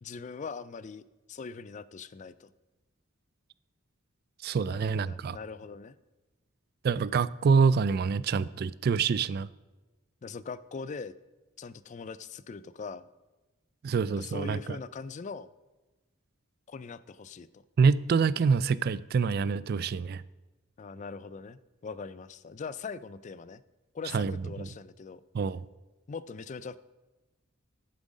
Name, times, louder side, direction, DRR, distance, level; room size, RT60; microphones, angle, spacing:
voice 1, 0.0-2.5 4.7-6.0 10.2-11.1 11.6-13.1 14.1-15.5 16.7-17.6 20.8-23.6 23.9-25.2 26.1-26.8, left 5 dB, 35° left, 0.3 m, -41 dB
voice 2, 4.4-5.4 6.8-9.5 13.8-14.6 17.8-20.2 24.1-24.3 24.6-24.7 25.3-25.6, right 5 dB, 50° right, 0.3 m, -26 dB
11.0 x 7.5 x 5.1 m
head